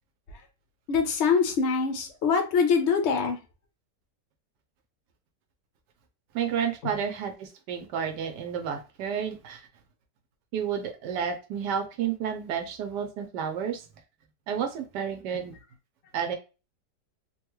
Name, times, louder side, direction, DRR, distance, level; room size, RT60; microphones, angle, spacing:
voice 1, 0.9-3.4 6.8-6.9, left 5 dB, 65° left, 0.7 m, -24 dB
voice 2, 6.3-9.6 10.5-13.8 14.5-15.5 16.1-16.4, right 7 dB, 80° right, 1.2 m, -31 dB
3.3 x 2.3 x 3.0 m
omnidirectional pair, 1.9 m